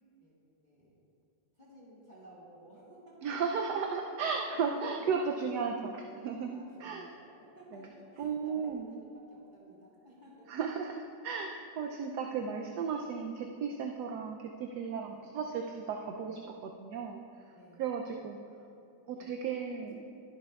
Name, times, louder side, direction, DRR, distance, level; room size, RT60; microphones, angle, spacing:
voice 1, 0.6-1.0 1.5-3.2 4.5-5.5 6.5-10.5 15.0-15.3 17.5-18.0 19.1-19.8, equal, 30° left, -7 dB, 1.6 m, -56 dB
voice 2, 3.2-7.1 7.7-7.9 8.2-8.9 10.5-17.5 17.8-18.4 19.1-20.1, right 5 dB, 70° right, 2 dB, 1.1 m, -35 dB
13.0 x 11.0 x 2.3 m, 2.7 s
omnidirectional pair, 1.9 m